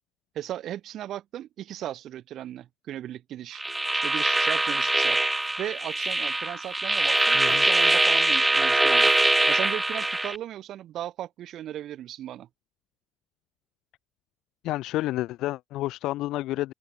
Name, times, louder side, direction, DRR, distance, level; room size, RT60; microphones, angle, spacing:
voice 1, 0.3-3.6 3.9-5.2 5.6-9.1 9.5-12.5, right 12 dB, 65° right, 5.6 m, -36 dB
sound 1, 3.6-10.4, right 2 dB, 10° right, 1.5 m, -23 dB
voice 2, 7.3-7.6 14.6-16.7, left 16 dB, 80° left, 0.7 m, -30 dB
cardioid pair, 105°, 0 cm